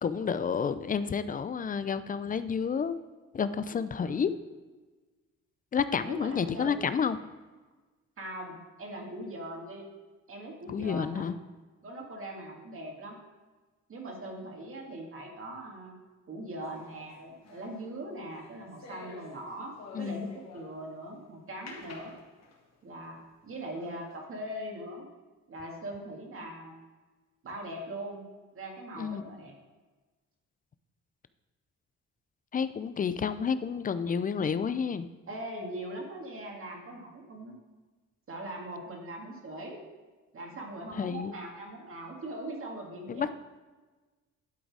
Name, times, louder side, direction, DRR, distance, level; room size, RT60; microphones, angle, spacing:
voice 1, 0.0-3.0 3.3-4.3 5.7-7.2 10.7-11.3 19.9-20.3 29.0-29.2 32.5-35.1 40.9-41.3 43.1-43.3, left 6 dB, 30° left, 13 dB, 0.4 m, -30 dB
voice 2, 3.7-4.3 6.0-6.8 8.2-9.9 10.3-11.2 11.8-13.2 13.9-15.9 16.3-22.1 22.8-25.1 25.5-26.8 27.4-28.2 28.5-29.5 35.3-37.6 38.3-39.8 40.3-43.3, right 1 dB, 45° right, 1 dB, 2.0 m, -41 dB
sound 1, 16.6-21.0 21.7-22.8 23.3-23.4 23.7-24.2, left 3 dB, 60° left, 1.9 m, -50 dB
11.5 x 4.0 x 4.7 m, 1.3 s
cardioid pair, 90°, 30 cm